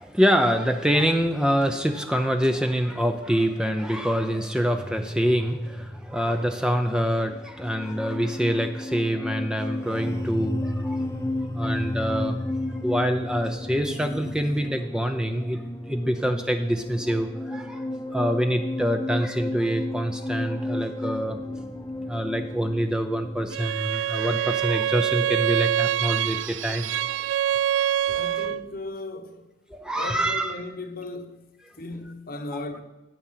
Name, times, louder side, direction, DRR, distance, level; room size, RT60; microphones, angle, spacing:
voice 1, 0.0-11.0 11.5-12.3 12.8-17.8 18.1-21.4 22.1-26.9 27.8-27.9 29.7-30.5, equal, 5° right, 0.6 m, -25 dB
sound 1, 4.7-23.6, left 1 dB, 15° left, 0.9 m, -33 dB
Bowed string instrument, 23.5-28.7, right 11 dB, 80° right, 0.3 m, -25 dB
voice 2, 28.1-29.5 29.9-32.8, left 2 dB, 50° left, 1.1 m, -37 dB
13.5 x 8.4 x 5.7 m
head